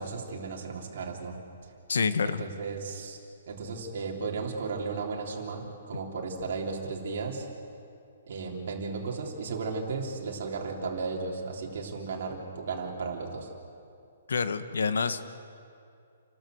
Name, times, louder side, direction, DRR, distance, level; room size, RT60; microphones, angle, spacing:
voice 1, 0.0-1.4 2.2-3.2 3.5-7.5 8.3-13.5, right 4 dB, 45° right, -1 dB, 3.4 m, -35 dB
voice 2, 1.9-2.4 14.3-15.2, left 5 dB, 85° left, 12 dB, 1.2 m, -27 dB
30.0 x 12.5 x 7.8 m, 2.5 s
hypercardioid pair, 175°, 0 cm